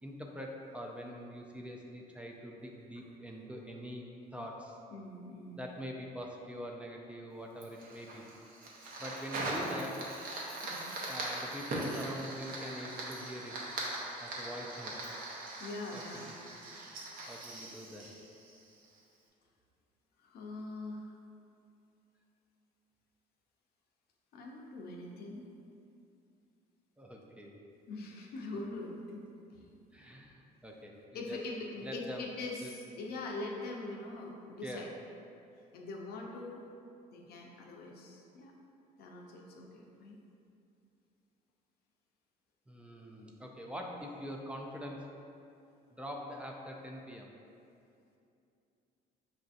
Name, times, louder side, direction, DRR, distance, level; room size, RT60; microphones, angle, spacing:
voice 1, 0.0-4.1 4.3-4.8 5.5-8.2 9.0-10.0 11.0-13.5 14.2-14.9 15.9-16.3 16.9-17.0 17.3-18.1 27.0-27.6 29.9-31.4 31.8-32.2 32.6-32.7 34.6-34.8 42.7-45.0 45.9-47.3, equal, 5° right, -1 dB, 0.4 m, -44 dB
voice 2, 4.9-5.6 9.6-9.8 10.6-11.0 15.6-16.3 17.2-17.5 20.2-21.2 24.3-25.5 27.9-29.7 31.1-34.9 35.7-36.6 37.1-38.5 39.0-40.2, left 2 dB, 65° left, 0 dB, 0.6 m, -43 dB
Fire, 7.6-19.0, right 2 dB, 60° right, 0.8 m, -41 dB
5.5 x 2.6 x 2.4 m, 2.6 s
cardioid pair, 110°, 17 cm